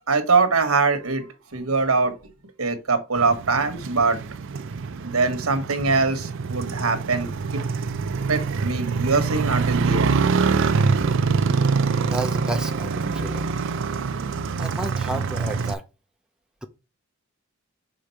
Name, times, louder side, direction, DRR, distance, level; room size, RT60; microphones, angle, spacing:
voice 1, 0.1-2.1 2.6-4.2 5.0-7.3 8.3-10.2, right 4 dB, 85° right, 1.3 m, -22 dB
Motorcycle, 3.2-15.7, right 5 dB, 60° right, 0.5 m, -25 dB
voice 2, 12.0-13.5 14.6-15.8, right 1 dB, 5° right, 0.5 m, -31 dB
5.1 x 3.8 x 5.6 m
head